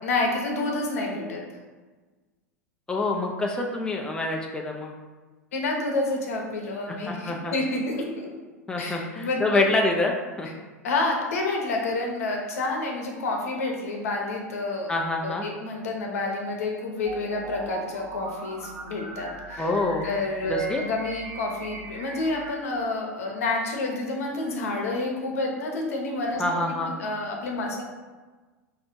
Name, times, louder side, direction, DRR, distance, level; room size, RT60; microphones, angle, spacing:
voice 1, 0.0-1.4 5.5-8.3 8.8-9.4 10.8-14.9 15.2-19.6 20.0-26.4 26.8-27.8, left 2 dB, 65° left, 0 dB, 0.8 m, -29 dB
voice 2, 2.9-4.9 6.9-7.5 8.7-10.5 14.9-15.5 19.6-20.1 20.5-20.8 26.4-26.9, left 2 dB, 10° left, 0 dB, 0.4 m, -26 dB
sound 1, 17.0-22.5, right 3 dB, 40° right, 0.8 m, -40 dB
3.2 x 2.7 x 4.5 m, 1.3 s
figure-of-eight pair, 90°, 8 cm